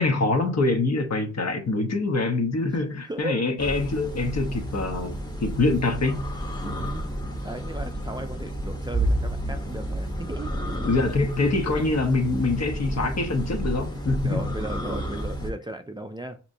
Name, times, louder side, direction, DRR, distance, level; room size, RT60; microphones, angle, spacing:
voice 1, 0.0-6.2 10.8-14.5, left 3 dB, 60° left, 1.0 m, -25 dB
voice 2, 3.0-3.4 6.8-7.1 7.4-10.5 10.8-10.9 14.2-16.4, right 1 dB, 15° right, 0.4 m, -35 dB
sound 1, 3.6-15.5, right 1 dB, 15° left, 0.9 m, -31 dB
6.2 x 2.9 x 2.7 m
wide cardioid pair, 80°, 31 cm